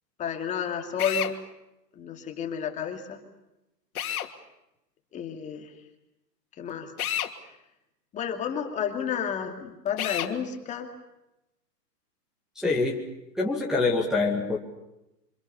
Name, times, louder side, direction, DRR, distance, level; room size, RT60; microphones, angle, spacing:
voice 1, 0.2-1.3 2.0-3.2 5.1-5.7 6.6-6.9 8.1-10.9, left 7 dB, 15° left, 4 dB, 2.4 m, -31 dB
Drill, 1.0-1.3 3.9-4.3 7.0-7.3 10.0-10.3, left 10 dB, 55° left, 2.8 m, -30 dB
voice 2, 12.6-13.0 13.4-14.6, left 3 dB, ahead, -6 dB, 2.0 m, -25 dB
27.5 x 26.0 x 7.0 m, 0.91 s
hypercardioid pair, 160°, 50 cm